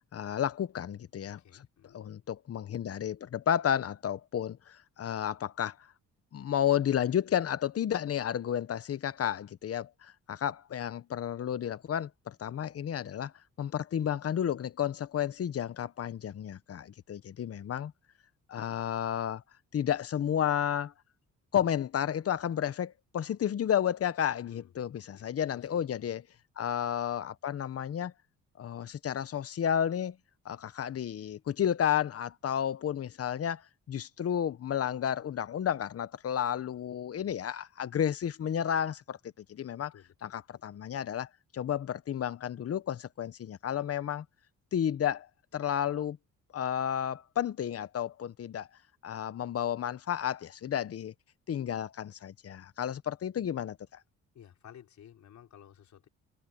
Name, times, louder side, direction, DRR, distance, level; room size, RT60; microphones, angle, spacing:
voice 1, 0.1-1.4 1.9-5.8 6.3-13.3 13.6-17.9 18.5-19.4 19.7-20.9 21.5-26.2 26.6-28.1 28.6-30.2 30.4-33.6 33.9-39.9 40.2-41.3 41.5-44.2 44.7-45.3 45.5-46.2 46.5-48.7 49.0-51.1 51.5-53.8, left 9 dB, 50° left, 1.1 m, -32 dB
voice 2, 1.4-2.0 24.4-24.8 25.1-26.1 39.9-40.6 54.3-56.1, left 10 dB, 65° left, 4.7 m, -55 dB
cardioid pair, 90°, 30 cm